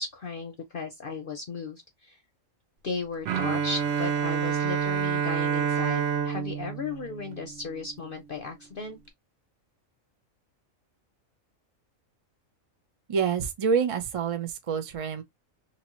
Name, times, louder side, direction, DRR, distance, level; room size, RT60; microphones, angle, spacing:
voice 1, 0.0-2.2 2.8-9.0, left 4 dB, 50° left, 0.7 m, -36 dB
Bowed string instrument, 3.3-8.1, right 7 dB, 60° right, 0.8 m, -28 dB
voice 2, 13.1-15.2, right 6 dB, 40° right, 0.4 m, -27 dB
2.9 x 2.8 x 3.0 m
omnidirectional pair, 1.4 m